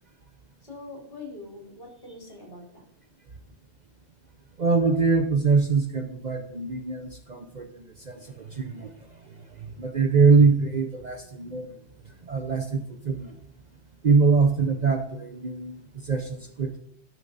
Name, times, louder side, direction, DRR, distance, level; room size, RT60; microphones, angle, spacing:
voice 1, 0.6-2.8, left 2 dB, 55° left, -1 dB, 4.3 m, -43 dB
voice 2, 4.6-7.7 8.1-8.9 9.8-11.7 12.3-13.3 14.0-16.8, right 4 dB, 45° right, 6 dB, 0.7 m, -23 dB
12.0 x 6.5 x 4.0 m, 0.69 s
omnidirectional pair, 1.2 m